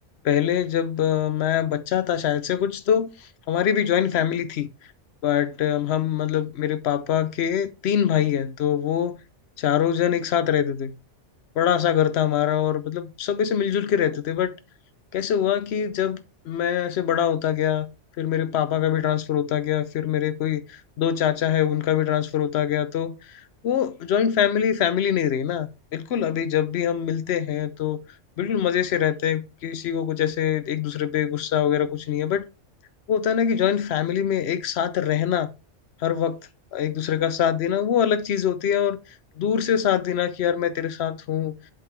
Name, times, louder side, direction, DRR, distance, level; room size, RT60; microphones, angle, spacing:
voice 1, 0.2-4.7 5.2-9.2 9.6-10.9 11.6-14.6 15.1-17.9 18.2-28.0 28.4-32.5 33.1-35.5 36.0-39.0 39.4-41.5, left 9 dB, 65° left, 0.9 m, -24 dB
7.4 x 4.6 x 3.4 m
omnidirectional pair, 1.3 m